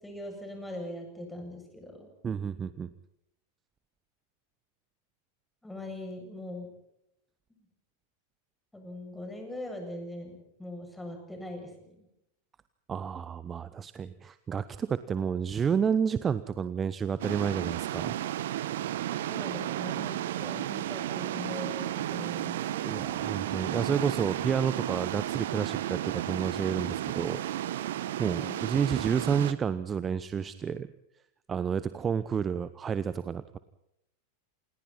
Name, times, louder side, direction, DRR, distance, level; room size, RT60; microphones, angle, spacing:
voice 1, 0.0-2.1 5.6-6.7 8.7-12.1 19.3-23.0 28.2-28.6, left 1 dB, 5° left, 3 dB, 7.9 m, -41 dB
voice 2, 2.2-2.9 12.9-18.1 22.8-27.7 28.2-30.9 31.5-33.6, right 7 dB, 20° right, 14 dB, 0.9 m, -30 dB
sound 1, 17.2-29.5, right 12 dB, 55° right, 1.3 m, -33 dB
28.5 x 28.5 x 4.4 m, 0.81 s
figure-of-eight pair, 90°, 0 cm